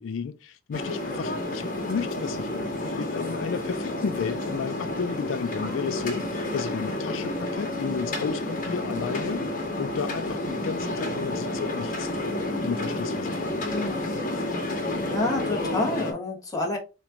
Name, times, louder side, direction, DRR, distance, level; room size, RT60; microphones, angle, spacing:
voice 1, 0.0-12.4 12.6-13.7, left 6 dB, 80° left, 0.4 m, -33 dB
sound 1, 0.7-16.1, left 1 dB, 45° left, 1.5 m, -30 dB
voice 2, 13.7-14.1 14.7-14.8 15.1-16.8, left 2 dB, 20° left, 1.4 m, -29 dB
4.1 x 3.1 x 3.6 m
head